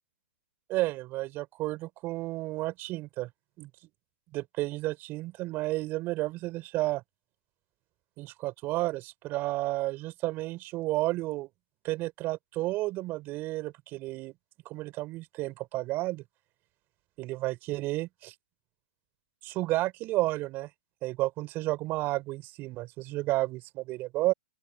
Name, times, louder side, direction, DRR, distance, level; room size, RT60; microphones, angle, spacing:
voice 1, 0.7-3.3 3.6-3.7 4.3-7.0 8.2-11.5 11.8-14.3 14.6-16.2 17.2-18.3 19.4-20.7 21.0-24.3, right 18 dB, 30° right, 6.2 m, -32 dB
open air
hypercardioid pair, 135°, 7 cm